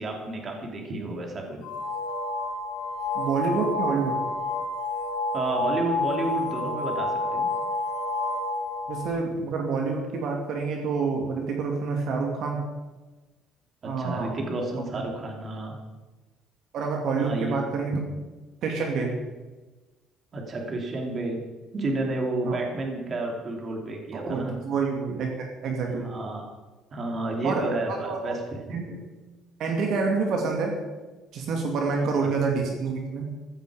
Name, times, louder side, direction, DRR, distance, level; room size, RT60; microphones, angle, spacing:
voice 1, 0.0-1.6 5.3-7.5 13.8-15.8 17.2-17.6 17.9-18.0 20.3-21.4 21.7-24.6 26.0-26.5 26.9-28.8 32.0-32.3, right 2 dB, 30° right, 1 dB, 2.9 m, -31 dB
sound 1, 1.6-9.2, left 2 dB, 60° left, 3.6 m, -29 dB
voice 2, 3.1-4.2 8.9-12.6 13.8-14.3 16.7-17.9 18.6-19.2 22.4-22.6 24.1-26.1 27.4-28.3 28.7-29.0 29.6-30.7 31.3-33.3, right 4 dB, 55° right, 1 dB, 2.5 m, -28 dB
15.5 x 14.5 x 5.0 m, 1.2 s
cardioid pair, 160°, 0 cm